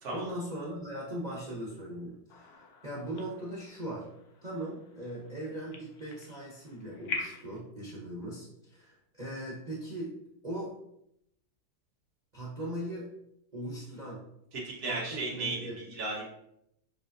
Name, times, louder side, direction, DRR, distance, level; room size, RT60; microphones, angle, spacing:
voice 1, 0.0-4.1 4.4-10.2 10.4-10.7 12.3-13.1 13.5-14.2 14.8-15.8, right 1 dB, 80° right, -5 dB, 0.3 m, -39 dB
sound 1, 2.3-7.6, left 4 dB, 75° left, 0.9 m, -44 dB
voice 2, 14.5-16.2, right 3 dB, 50° right, -3 dB, 1.5 m, -35 dB
6.5 x 2.5 x 2.6 m, 0.76 s
omnidirectional pair, 2.4 m